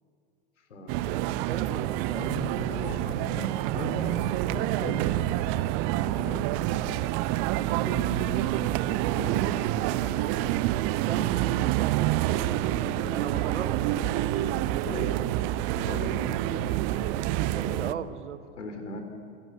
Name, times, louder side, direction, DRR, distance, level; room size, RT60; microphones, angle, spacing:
voice 1, 0.7-5.6 6.0-7.1 7.5-10.7 11.0-11.4 12.1-13.6 14.6-15.3 15.6-18.1 18.6-19.0, left 1 dB, 75° left, 6 dB, 3.9 m, -39 dB
sound 1, 0.9-17.9, right 15 dB, 40° right, 0.8 m, -27 dB
voice 2, 1.4-2.3 11.0-12.2 13.1-13.7 17.5-18.4, right 9 dB, 70° right, 13 dB, 1.3 m, -37 dB
28.0 x 17.5 x 6.8 m, 2.7 s
figure-of-eight pair, 90°, 36 cm